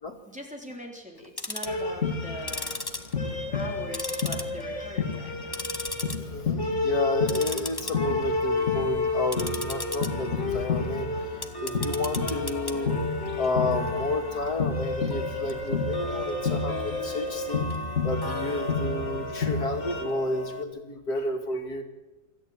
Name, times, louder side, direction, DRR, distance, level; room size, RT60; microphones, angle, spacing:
voice 1, 0.3-2.8 3.5-5.6 8.0-8.3, equal, 5° right, -1 dB, 3.7 m, -42 dB
Tick-tock, 1.2-1.8 2.4-3.7 3.9-4.8 5.1-6.2 6.5-6.8 7.2-20.6, left 1 dB, 15° left, 1.1 m, -37 dB
sound 1, 1.6-20.0, left 4 dB, 45° left, 2.7 m, -30 dB
voice 2, 6.2-13.1 13.3-21.8, left 2 dB, 75° left, 3 dB, 2.7 m, -31 dB
25.0 x 13.5 x 8.9 m, 1.1 s
omnidirectional pair, 1.7 m